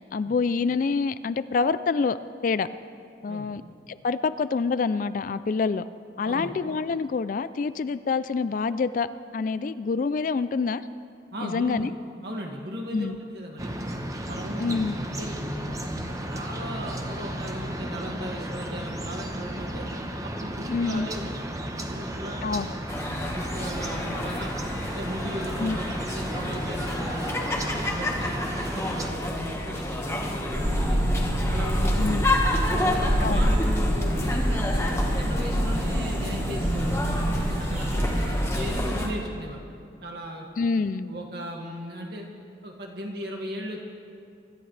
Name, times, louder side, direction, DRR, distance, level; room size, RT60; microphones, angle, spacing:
voice 1, 0.0-2.2 2.4-2.7 3.2-3.6 3.9-5.8 6.2-9.1 9.3-10.8 11.4-11.9 12.9-13.2 14.6-15.0 20.7-21.1 22.4-22.8 25.6-25.8 32.0-32.3 33.2-33.5 40.6-41.1, left 4 dB, 45° left, 14 dB, 0.3 m, -26 dB
voice 2, 11.3-11.9 12.2-13.9 14.3-19.9 20.2-21.5 21.8-22.6 23.2-24.5 24.9-31.0 31.5-32.2 32.7-39.6 40.0-40.5 41.0-42.3 42.6-43.8, equal, 60° right, 0 dB, 2.0 m, -37 dB
sound 1, 13.6-29.1, right 1 dB, 20° right, 0.8 m, -34 dB
sound 2, 22.9-39.1, left 1 dB, 15° left, 1.4 m, -30 dB
sound 3, 30.5-38.8, equal, 40° right, 3.6 m, -26 dB
25.0 x 13.0 x 3.3 m, 2.4 s
head